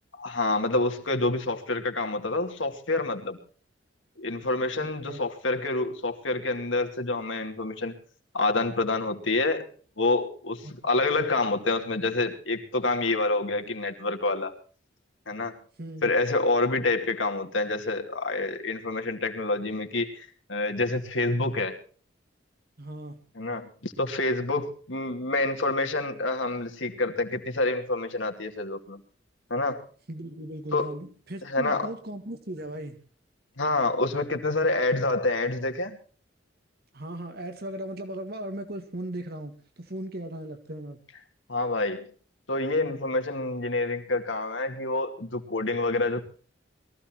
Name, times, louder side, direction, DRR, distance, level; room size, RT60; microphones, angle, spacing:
voice 1, 0.2-3.4 4.2-8.0 8.3-9.7 10.0-14.5 15.3-15.6 16.0-21.8 23.4-29.0 29.5-29.8 30.7-30.9 31.4-31.9 33.6-36.0 41.5-42.1 42.5-46.2, left 2 dB, 90° left, 2.5 m, -27 dB
voice 2, 4.8-5.2 10.6-10.7 15.8-16.1 22.8-23.2 30.1-33.0 36.9-41.0, right 1 dB, 55° right, 1.9 m, -37 dB
22.5 x 15.0 x 3.0 m
head